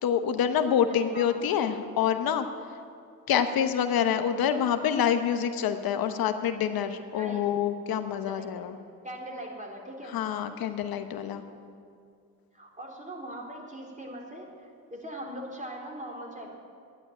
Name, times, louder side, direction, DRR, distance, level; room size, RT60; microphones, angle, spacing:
voice 1, 0.0-2.5 3.3-8.8 10.1-11.4, left 8 dB, 75° left, 9 dB, 1.0 m, -27 dB
voice 2, 0.9-1.3 7.1-7.5 8.3-8.7 9.0-10.2 12.5-16.6, right 1 dB, 20° right, 0 dB, 3.8 m, -41 dB
12.0 x 10.0 x 9.2 m, 2.3 s
supercardioid pair, 60°, 36 cm